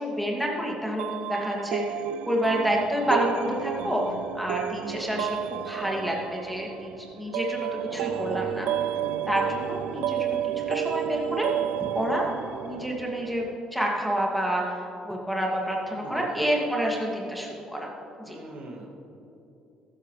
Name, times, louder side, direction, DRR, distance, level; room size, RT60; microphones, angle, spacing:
voice 1, 0.0-2.0 2.2-4.0 4.3-8.7 9.3-10.4 10.7-11.5 11.8-12.3 12.6-13.4 13.7-14.8 15.0-17.9 18.3-18.4, equal, ahead, -2 dB, 2.4 m, -28 dB
sound 1, 1.0-13.6, right 12 dB, 75° right, 0.3 m, -32 dB
sound 2, 7.7-12.5, left 1 dB, 30° left, 2.0 m, -43 dB
voice 2, 15.9-16.6 18.2-18.9, right 2 dB, 55° right, -1 dB, 2.3 m, -41 dB
14.5 x 13.0 x 3.3 m, 2.8 s
supercardioid pair, 75°, 2 cm